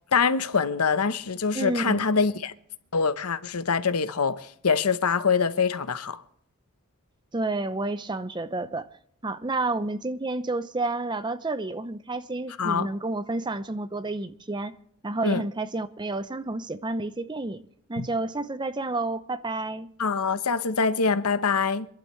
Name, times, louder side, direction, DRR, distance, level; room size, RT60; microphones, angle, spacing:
voice 1, 0.1-2.5 2.9-6.2 12.6-12.9 15.2-15.4 18.0-18.1 20.0-21.9, left 5 dB, 80° left, 0.9 m, -24 dB
voice 2, 1.5-2.0 7.3-8.9 9.2-14.7 15.0-17.6 17.9-19.9, right 2 dB, 20° right, 0.6 m, -30 dB
25.5 x 11.5 x 3.2 m
head